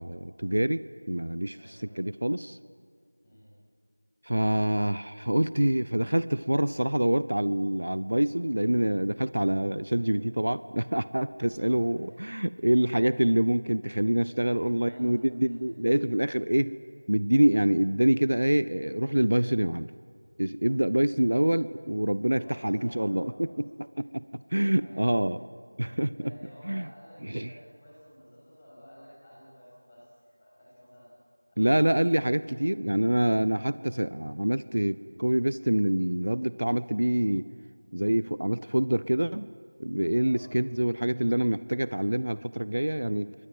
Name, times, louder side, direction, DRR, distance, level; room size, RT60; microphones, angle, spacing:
voice 1, 0.0-2.6 4.2-16.8 17.1-19.9 20.4-25.4 25.8-26.3 26.6-26.9 27.2-27.5 31.6-37.5 37.9-39.5 39.8-43.3, right 1 dB, 55° right, 16 dB, 0.7 m, -26 dB
voice 2, 1.5-2.0 3.2-3.6 11.5-12.1 12.6-12.7 14.2-15.7 17.3-17.5 22.2-23.6 24.8-25.3 26.1-31.1 31.5-32.2 40.2-40.5, equal, 15° left, -8 dB, 7.4 m, -52 dB
27.0 x 22.0 x 9.2 m, 2.1 s
figure-of-eight pair, 175°, 0 cm